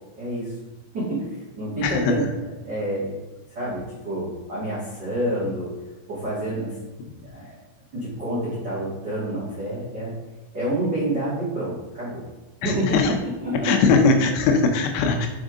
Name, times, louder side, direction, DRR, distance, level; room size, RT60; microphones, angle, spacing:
voice 1, 0.2-0.5 0.9-3.2 3.5-5.7 6.1-6.7 7.2-7.5 7.9-10.1 10.5-12.2 12.6-13.9, right 1 dB, 65° right, -9 dB, 1.0 m, -28 dB
voice 2, 12.6-13.1 13.6-15.3, left 4 dB, 80° left, 3 dB, 3.0 m, -20 dB
7.1 x 4.9 x 3.8 m, 1.1 s
omnidirectional pair, 5.9 m